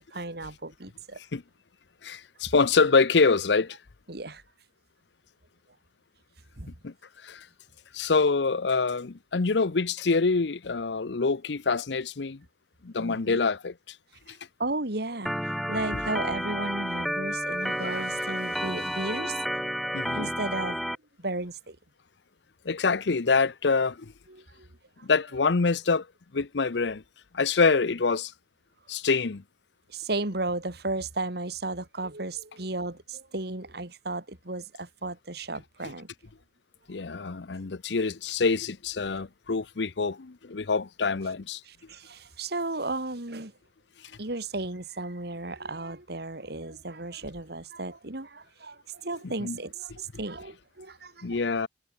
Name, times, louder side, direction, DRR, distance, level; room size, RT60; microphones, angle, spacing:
voice 1, 0.0-1.2 4.1-4.4 6.6-6.7 13.0-13.4 14.3-19.4 20.1-20.8 21.2-21.8 24.3-24.7 29.9-36.1 41.7-43.5 44.2-51.4, right 2 dB, 60° right, 2.8 m, -34 dB
voice 2, 2.0-3.8 6.8-6.9 7.2-7.5 7.9-12.4 12.8-14.0 14.3-14.4 19.9-20.3 22.6-24.1 25.0-26.1 26.3-27.0 27.3-28.3 28.9-29.4 36.9-41.6 49.2-49.6 51.2-51.7, left 4 dB, 70° left, 0.7 m, -25 dB
Organ, 15.3-21.0, equal, ahead, 0.5 m, -31 dB
head